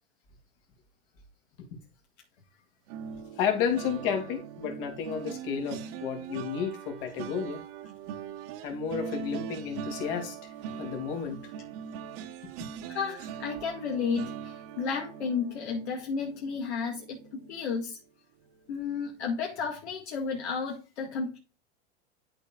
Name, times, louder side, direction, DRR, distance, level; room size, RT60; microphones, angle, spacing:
sound 1, 2.9-18.0 18.4-18.7 19.0-19.2, right 8 dB, 55° right, 1.3 m, -41 dB
voice 1, 3.4-7.6 8.6-11.4, left 7 dB, 55° left, 2.8 m, -32 dB
voice 2, 12.9-18.0 18.7-21.4, left 5 dB, 70° left, 2.1 m, -32 dB
12.0 x 4.6 x 2.4 m
hypercardioid pair, 115°, 34 cm